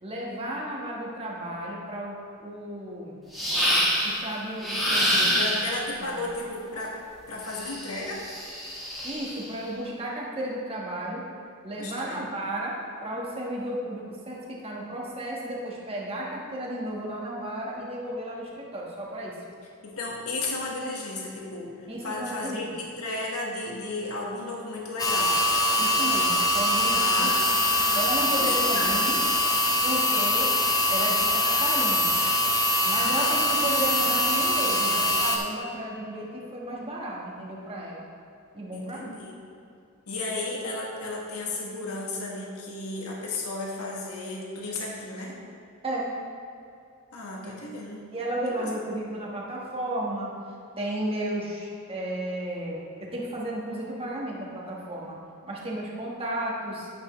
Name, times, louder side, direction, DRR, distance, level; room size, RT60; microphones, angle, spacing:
voice 1, 0.0-3.2 4.0-5.3 6.0-6.2 9.0-11.2 11.6-19.3 21.9-22.7 25.8-27.3 27.9-29.2 29.8-30.5 30.9-32.1 32.8-38.1 38.5-39.1 45.8-46.1 47.4-47.5 48.1-50.3 50.8-55.2 55.4-56.9, right 1 dB, 25° right, -3 dB, 1.5 m, -33 dB
sound 1, 3.3-4.2 4.6-5.8 7.5-9.4, equal, ahead, 1.6 m, -26 dB
voice 2, 5.3-6.9 7.3-8.2 11.8-12.2 19.8-25.4 26.9-29.0 32.8-33.5 34.1-34.2 38.7-39.4 40.1-45.4 47.1-48.0 48.5-48.7, left 2 dB, 75° left, -2 dB, 1.6 m, -34 dB
sound 2, 25.0-35.4, left 1 dB, 15° left, 0.7 m, -23 dB
9.4 x 8.4 x 3.2 m, 2.6 s
head